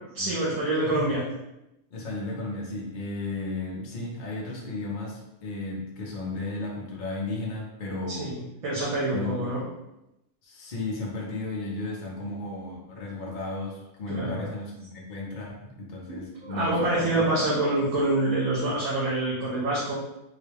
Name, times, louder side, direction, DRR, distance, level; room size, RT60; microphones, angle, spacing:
voice 1, 0.1-1.2 8.1-9.6 14.1-14.5 16.4-19.9, right 2 dB, 80° right, -7 dB, 1.2 m, -26 dB
voice 2, 0.8-1.2 1.9-8.3 9.1-9.6 10.4-17.4, left 2 dB, 45° left, -3 dB, 0.7 m, -34 dB
3.8 x 2.2 x 3.3 m, 0.90 s
omnidirectional pair, 1.4 m